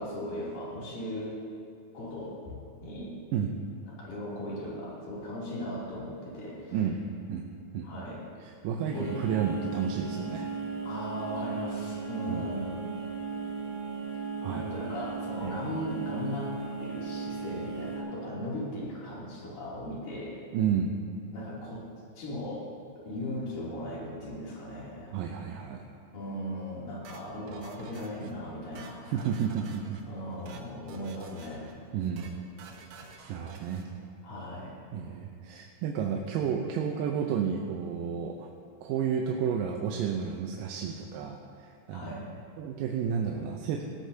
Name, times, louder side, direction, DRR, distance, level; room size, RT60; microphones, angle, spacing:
voice 1, 0.0-1.3 1.9-2.6 2.8-3.1 4.0-6.8 7.8-8.2 8.9-9.2 10.8-12.9 14.5-16.5 16.8-20.4 21.3-21.8 22.1-22.7 23.0-25.2 26.1-29.3 30.1-31.7 34.2-34.8 41.9-42.3, equal, 80° left, -7 dB, 4.7 m, -37 dB
voice 2, 8.4-10.5 12.3-12.4 14.4-14.6 15.4-15.6 20.5-21.0 25.1-25.9 29.1-30.0 31.9-32.3 33.3-33.9 34.9-38.5 38.8-42.1 42.6-43.8, right 7 dB, 85° right, 1 dB, 2.4 m, -31 dB
sound 1, 8.9-18.0, right 5 dB, 25° left, 3.7 m, -36 dB
sound 2, 27.0-28.3 28.6-30.0 30.3-30.6 30.9-31.7 32.0-32.3 32.6-33.9, right 4 dB, 65° right, 2.0 m, -49 dB
18.0 x 14.0 x 2.8 m, 2.4 s
omnidirectional pair, 3.9 m